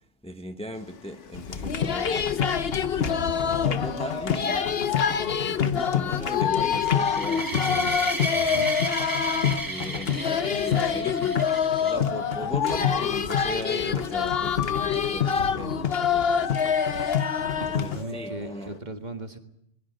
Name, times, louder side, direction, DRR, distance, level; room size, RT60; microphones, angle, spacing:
voice 1, 0.2-7.5 8.0-8.1 9.6-11.5 11.8-16.8 17.8-18.8, equal, 5° left, 7 dB, 1.2 m, -39 dB
sound 1, 0.8-18.8, left 7 dB, 80° left, 1.5 m, -34 dB
sound 2, 1.3-18.0, left 7 dB, 55° left, 1.2 m, -26 dB
sound 3, 6.6-11.9, right 2 dB, 20° right, 1.3 m, -33 dB
voice 2, 7.4-8.8 17.6-19.4, right 2 dB, 40° right, 6 dB, 1.9 m, -38 dB
26.0 x 21.5 x 6.5 m, 0.78 s
omnidirectional pair, 1.2 m